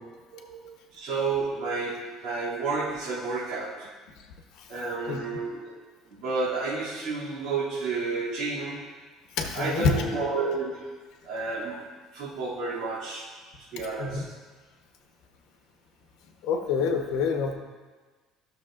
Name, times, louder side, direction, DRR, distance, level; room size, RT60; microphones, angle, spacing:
voice 1, 0.4-3.9 4.7-5.7 6.1-8.8 9.5-10.9 11.2-11.8 12.1-13.3 13.7-14.2, right 3 dB, 70° right, -11 dB, 2.6 m, -31 dB
voice 2, 9.4-10.0 14.0-14.2 16.4-17.5, left 5 dB, 70° left, 3 dB, 1.0 m, -26 dB
13.5 x 6.4 x 2.5 m, 1.4 s
cardioid pair, 145°, 0 cm